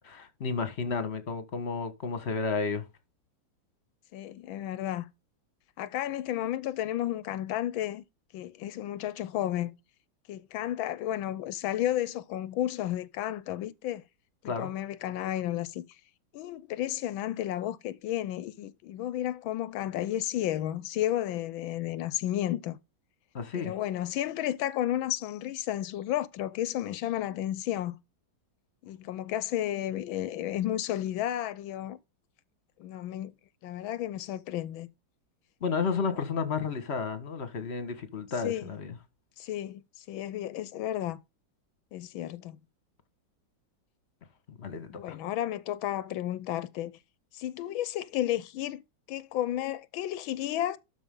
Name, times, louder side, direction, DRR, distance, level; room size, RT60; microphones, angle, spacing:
voice 1, 0.1-2.9 14.4-14.7 23.3-23.7 35.6-39.0 44.5-45.2, left 5 dB, 35° left, 1.6 m, -32 dB
voice 2, 4.1-5.1 5.8-8.0 8.3-9.7 10.3-14.0 14.4-15.8 16.3-22.8 23.5-27.9 28.8-32.0 32.8-33.3 33.6-34.9 36.1-36.2 38.4-38.7 39.4-41.2 41.9-42.6 44.9-47.0 47.3-48.8 49.1-50.8, left 12 dB, 85° left, 1.5 m, -32 dB
12.5 x 5.5 x 3.7 m
omnidirectional pair, 2.2 m